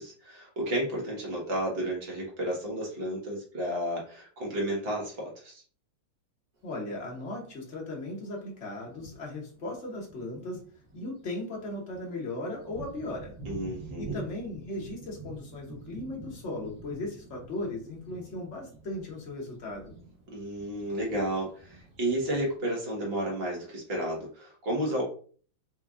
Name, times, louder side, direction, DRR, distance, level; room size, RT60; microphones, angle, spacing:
voice 1, 0.0-5.6 13.4-14.2 20.3-25.0, right 1 dB, 35° right, -2 dB, 1.1 m, -32 dB
voice 2, 6.6-10.6 10.9-13.4 14.0-20.0, left 2 dB, 75° left, -1 dB, 0.6 m, -37 dB
Thunder, 6.6-6.7 7.7-7.8 8.3-8.4 8.8-22.6, right 3 dB, 55° right, 1.4 m, -47 dB
4.4 x 2.5 x 2.4 m, 0.43 s
omnidirectional pair, 2.3 m